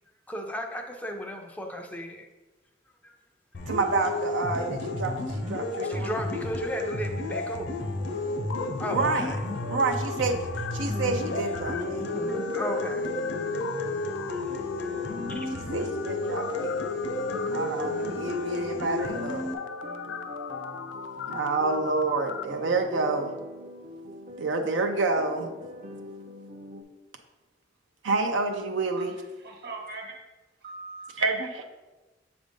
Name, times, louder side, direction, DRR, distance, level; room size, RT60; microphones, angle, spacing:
voice 1, 0.3-2.3 3.0-3.2 5.8-7.7 8.8-9.4 10.8-14.6 15.3-15.5, equal, 10° left, 3 dB, 0.4 m, -36 dB
sound 1, 3.5-19.5, left 2 dB, 70° left, 0.8 m, -32 dB
voice 2, 3.7-6.2 8.9-9.3 9.7-10.4 10.7-12.1 15.5-16.8 17.5-19.5 21.3-23.3 24.4-25.5 28.0-29.1 31.2-31.6, right 3 dB, 85° right, 4 dB, 0.6 m, -28 dB
sound 2, 3.9-5.3 5.6-5.9 6.4-22.4, left 7 dB, 85° left, 0.3 m, -40 dB
sound 3, 8.0-26.8, left 1 dB, 40° right, 0.6 m, -43 dB
voice 3, 29.4-30.2 30.6-31.1, right 3 dB, 55° right, 2 dB, 1.1 m, -40 dB
7.1 x 2.6 x 5.1 m, 1.2 s
head